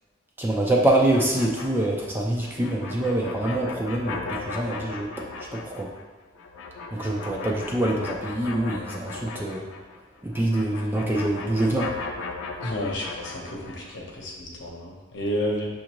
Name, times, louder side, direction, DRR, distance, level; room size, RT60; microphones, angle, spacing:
voice 1, 0.4-5.1 5.5-5.9 6.9-9.6 10.2-11.9, right 1 dB, 10° right, -2 dB, 0.4 m, -25 dB
sound 1, 1.1-10.0 10.3-13.9, left 3 dB, 90° left, 0.5 m, -37 dB
voice 2, 12.6-15.7, equal, 65° left, -2 dB, 0.9 m, -31 dB
6.1 x 2.5 x 2.9 m, 1.3 s
head